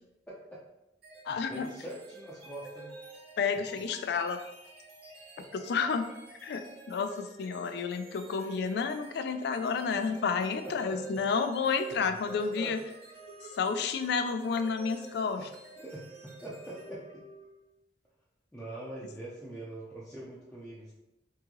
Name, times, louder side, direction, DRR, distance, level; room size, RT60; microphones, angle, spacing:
voice 1, 0.3-0.6 1.3-2.9 3.7-3.8 10.9-11.0 11.9-12.8 15.4-15.5 15.8-17.2 18.5-21.0, right 1 dB, 5° left, -8 dB, 0.5 m, -43 dB
sound 1, 1.0-17.7, right 2 dB, 60° right, 1.0 m, -50 dB
voice 2, 1.2-1.7 3.4-4.4 5.5-6.0 6.4-12.8 13.5-15.4, left 5 dB, 65° left, 8 dB, 0.3 m, -30 dB
3.7 x 2.7 x 2.9 m, 0.92 s
head